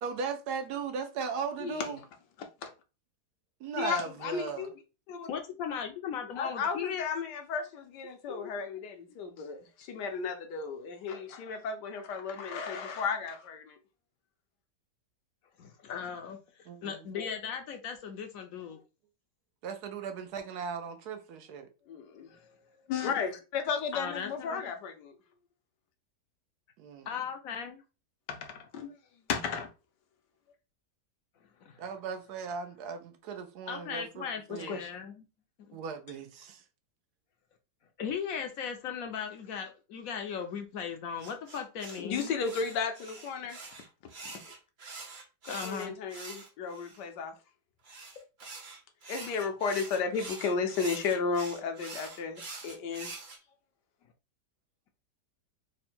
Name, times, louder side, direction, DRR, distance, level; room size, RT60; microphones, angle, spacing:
voice 1, 0.0-2.0 3.6-4.7 16.7-17.0 19.6-21.7 26.8-27.1 31.8-34.8 35.7-36.6, right 5 dB, 75° right, 1.1 m, -37 dB
voice 2, 1.6-1.9 2.4-2.7 3.8-4.7 5.1-5.3 6.3-13.8 21.9-25.1 28.3-29.0 29.3-29.7 34.5-34.9 42.0-43.6 44.2-44.5 45.4-47.3 49.1-53.1, left 5 dB, 80° left, 1.3 m, -34 dB
voice 3, 5.3-7.1 8.3-8.5 15.6-18.8 22.3-22.4 23.9-24.7 27.1-27.8 31.6-31.8 33.7-35.2 38.0-42.4 45.5-46.0, left 7 dB, 65° left, 0.9 m, -38 dB
sound 1, 41.2-47.0 47.8-53.4, right 3 dB, 40° right, 0.7 m, -45 dB
3.6 x 2.2 x 4.2 m
omnidirectional pair, 1.8 m